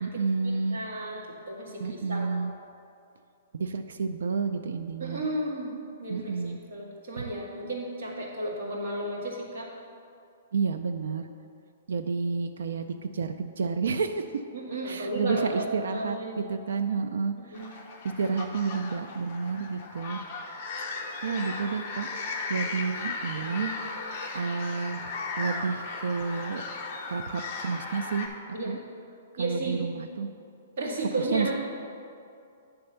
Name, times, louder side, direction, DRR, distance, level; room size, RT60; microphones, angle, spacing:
voice 1, 0.0-0.8 1.8-2.5 3.5-5.2 6.1-6.6 10.5-11.3 11.9-14.3 14.8-17.8 18.2-20.2 21.2-22.1 22.5-23.8 24.3-25.0 25.4-26.6 27.1-28.3 28.6-28.8 29.4-30.3 31.2-31.5, right 5 dB, 85° right, 7 dB, 0.4 m, -30 dB
voice 2, 0.7-2.3 5.0-5.7 6.0-9.7 14.5-16.4 17.4-17.7 28.5-28.8 29.4-29.8 30.8-31.5, right 1 dB, 50° right, -4 dB, 1.8 m, -33 dB
sound 1, 17.5-28.3, left 3 dB, 25° left, 0.7 m, -36 dB
9.4 x 3.4 x 6.7 m, 2.5 s
hypercardioid pair, 180°, 0 cm